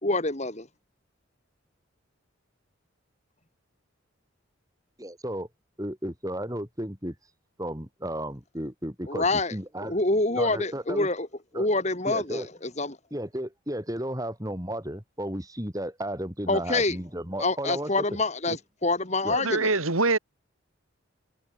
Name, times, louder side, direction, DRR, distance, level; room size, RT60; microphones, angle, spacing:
voice 1, 0.0-0.7 9.1-9.5 9.8-11.3 11.5-13.0 16.5-17.0 17.4-19.8, left 2 dB, 35° left, 2.6 m, -26 dB
voice 2, 5.0-5.5 5.8-7.1 7.6-10.0 10.4-11.1 11.5-11.7 12.1-12.5 13.1-17.9 18.5-18.6 19.2-19.4, right 1 dB, 15° right, 5.2 m, -33 dB
voice 3, 19.3-20.2, right 3 dB, 85° right, 3.2 m, -24 dB
head